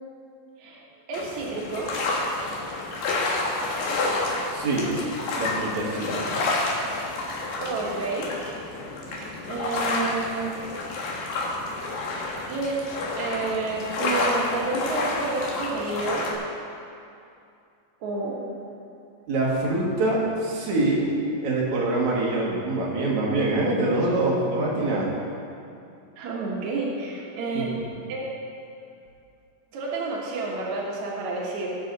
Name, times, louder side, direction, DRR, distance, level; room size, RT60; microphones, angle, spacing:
sound 1, 1.1-16.3, left 2 dB, 65° left, 2.4 m, -29 dB
voice 1, 1.1-1.9 7.6-8.3 9.2-10.5 12.5-16.3 18.0-18.4 26.2-27.7 28.1-28.3 29.7-31.8, right 3 dB, 85° right, -4 dB, 1.6 m, -30 dB
voice 2, 4.5-5.0 5.3-6.4 19.3-25.1 27.5-27.8, right 2 dB, 55° right, -4 dB, 2.3 m, -25 dB
18.5 x 6.3 x 4.0 m, 2.5 s
omnidirectional pair, 5.4 m